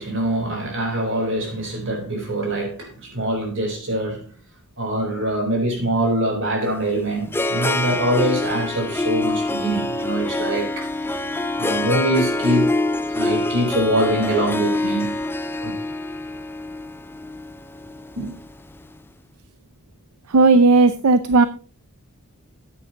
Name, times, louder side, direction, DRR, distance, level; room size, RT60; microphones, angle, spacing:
voice 1, 0.0-4.3 4.8-10.9 11.6-12.7 13.1-15.2 15.6-15.8 18.2-18.3, right 1 dB, 60° right, 4.1 m, -24 dB
Harp, 6.6-18.8, left 2 dB, 10° left, 0.5 m, -25 dB
voice 2, 20.3-21.5, right 3 dB, 80° right, 0.6 m, -14 dB
13.5 x 9.2 x 2.9 m
head